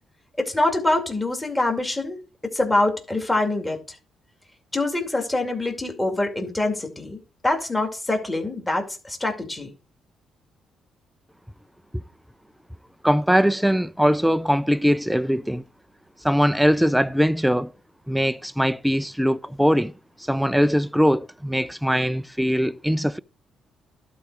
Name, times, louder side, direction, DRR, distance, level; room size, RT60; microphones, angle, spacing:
voice 1, 0.4-2.2 2.5-4.0 4.7-9.7, left 2 dB, 15° left, 2.3 m, -25 dB
voice 2, 13.0-15.6 16.2-17.7 18.1-19.9 20.2-23.2, equal, ahead, 0.3 m, -21 dB
11.5 x 4.2 x 4.7 m
cardioid pair, 90°, 0 cm